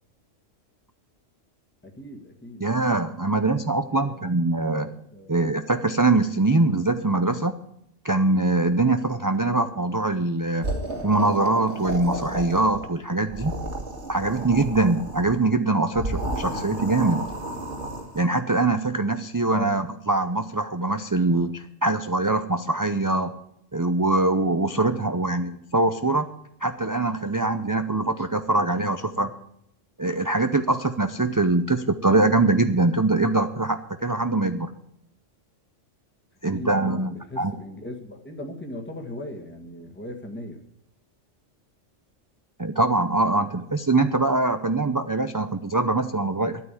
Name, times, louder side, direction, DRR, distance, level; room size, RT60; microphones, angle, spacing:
voice 1, 1.8-2.7 3.3-3.4 3.9-4.2 5.1-5.4 19.5-19.8 36.5-40.6, left 1 dB, 10° left, 2 dB, 1.8 m, -38 dB
voice 2, 2.6-4.9 5.3-7.5 8.0-10.7 11.0-13.5 14.1-17.3 18.1-23.3 23.7-26.3 26.6-29.3 30.0-34.7 36.4-37.1 37.4-37.6 42.6-46.6, right 2 dB, 25° right, 9 dB, 0.5 m, -23 dB
sound 1, 10.6-12.9 13.2-15.4 15.9-18.2, right 1 dB, 60° right, 2.8 m, -32 dB
12.0 x 9.2 x 8.3 m, 0.75 s
omnidirectional pair, 1.3 m